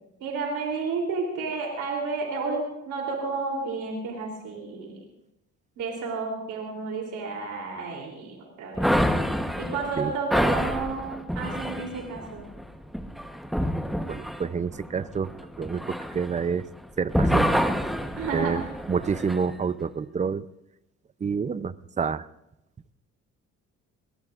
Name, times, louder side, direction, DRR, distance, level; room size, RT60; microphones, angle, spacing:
voice 1, 0.2-5.0 5.8-8.9 9.6-12.4 18.2-18.7, right 4 dB, 80° right, -1 dB, 3.3 m, -31 dB
sound 1, 8.8-16.8 17.1-19.4, equal, ahead, 1.0 m, -27 dB
voice 2, 14.1-15.3 15.6-16.7 17.0-17.6 18.3-18.6 18.9-20.5 21.2-22.2, right 6 dB, 25° right, 15 dB, 0.5 m, -28 dB
22.0 x 19.5 x 2.5 m, 0.90 s
cardioid pair, 90°, 30 cm